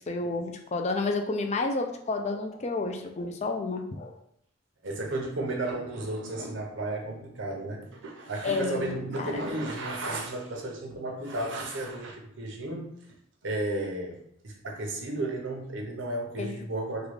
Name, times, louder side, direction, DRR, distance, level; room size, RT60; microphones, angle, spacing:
voice 1, 0.0-4.2 8.4-9.3 16.4-16.6, left 3 dB, 35° left, 4 dB, 0.4 m, -30 dB
voice 2, 4.8-12.9 13.4-14.2 14.4-17.1, right 2 dB, 80° right, 0 dB, 0.8 m, -33 dB
3.6 x 2.3 x 3.2 m, 0.76 s
head